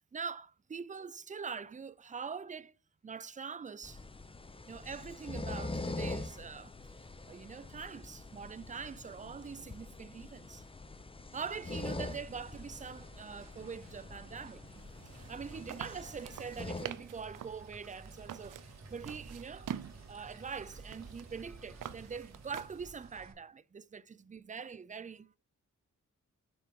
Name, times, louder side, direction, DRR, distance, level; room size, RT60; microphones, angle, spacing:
voice 1, 0.0-2.7 3.0-4.0 4.7-6.7 7.3-10.6 11.3-14.6 15.1-18.6 18.9-19.7 20.1-25.4, right 6 dB, 25° right, 0.4 m, -43 dB
sound 1, 3.8-16.9, left 3 dB, 15° left, 0.6 m, -44 dB
sound 2, 11.9-23.3, right 3 dB, 55° right, 2.0 m, -53 dB
sound 3, 14.7-22.9, right 10 dB, 75° right, 0.5 m, -47 dB
7.0 x 4.9 x 3.6 m
wide cardioid pair, 100°, 32 cm